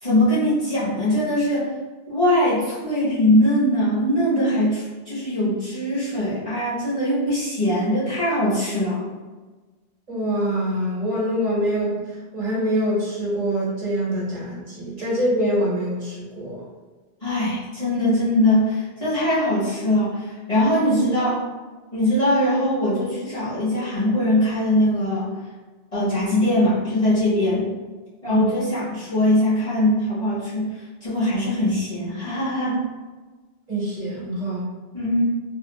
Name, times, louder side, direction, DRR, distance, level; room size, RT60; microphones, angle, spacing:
voice 1, 0.0-1.7 2.1-9.0 15.0-15.1 17.2-21.4 21.9-25.4 25.9-27.6 28.2-32.8 34.9-35.2, left 1 dB, 35° left, -11 dB, 1.2 m, -21 dB
voice 2, 10.1-16.6 28.3-28.5 33.7-34.7, equal, 40° right, -5 dB, 0.9 m, -25 dB
2.8 x 2.5 x 2.3 m, 1.3 s
omnidirectional pair, 1.1 m